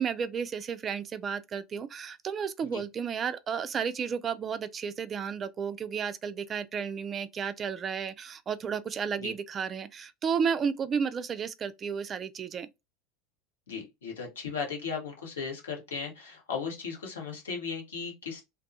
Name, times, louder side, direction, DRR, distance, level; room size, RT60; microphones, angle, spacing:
voice 1, 0.0-12.7, right 6 dB, 35° right, 0.3 m, -32 dB
voice 2, 13.7-18.4, left 5 dB, 80° left, 1.1 m, -36 dB
2.5 x 2.3 x 2.6 m
hypercardioid pair, 80°, 0 cm